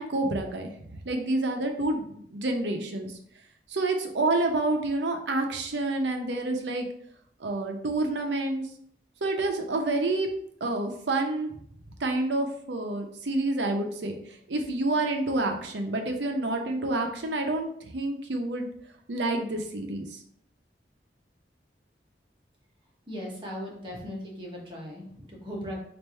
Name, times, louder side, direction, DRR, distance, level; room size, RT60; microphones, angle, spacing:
voice 1, 0.0-3.1 3.7-6.9 7.4-8.7 9.2-10.3 10.6-11.5 12.0-14.2 14.5-18.7 19.1-20.2, right 2 dB, 75° right, 4 dB, 0.7 m, -28 dB
voice 2, 23.1-25.8, equal, 25° right, -3 dB, 1.1 m, -38 dB
3.3 x 2.6 x 4.3 m, 0.67 s
head